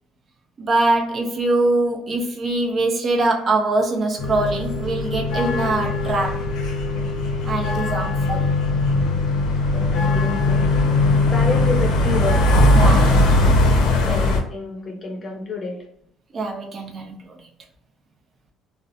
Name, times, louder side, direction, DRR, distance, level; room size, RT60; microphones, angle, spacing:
voice 1, 0.6-6.4 7.4-8.5 12.7-13.7 14.0-14.3 16.3-17.4, right 2 dB, 35° right, 0.6 m, -23 dB
sound 1, 4.2-14.4, left 2 dB, 80° left, 0.6 m, -19 dB
voice 2, 9.7-10.6 11.3-12.8 14.0-15.9, left 3 dB, 35° left, 0.7 m, -29 dB
2.4 x 2.1 x 2.7 m
cardioid pair, 130°, 0 cm